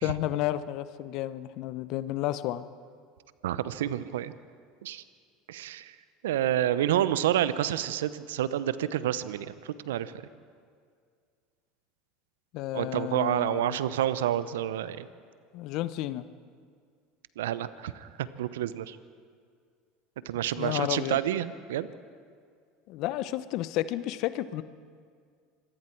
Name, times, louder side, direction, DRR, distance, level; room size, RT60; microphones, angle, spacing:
voice 1, 0.0-2.7 12.5-13.8 15.5-16.3 20.6-21.2 22.9-24.6, left 14 dB, 60° left, 14 dB, 0.9 m, -31 dB
voice 2, 3.4-4.3 4.8-5.0 5.5-5.9 6.2-10.1 12.7-15.1 17.4-19.0 20.2-21.9, right 11 dB, 80° right, 15 dB, 0.8 m, -29 dB
26.0 x 22.5 x 4.6 m, 2.1 s
hypercardioid pair, 80°, 0 cm